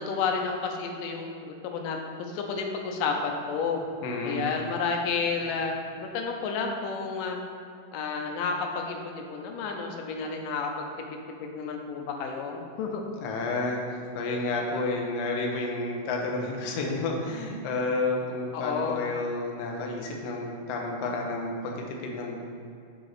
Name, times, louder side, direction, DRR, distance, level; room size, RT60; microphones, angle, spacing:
voice 1, 0.0-3.8 4.2-7.4 7.9-13.0 18.5-19.0, left 5 dB, 85° left, 3 dB, 2.4 m, -31 dB
voice 2, 4.0-4.5 13.2-22.4, left 2 dB, 65° left, 0 dB, 1.7 m, -30 dB
6.4 x 5.2 x 5.8 m, 2.5 s
omnidirectional pair, 3.8 m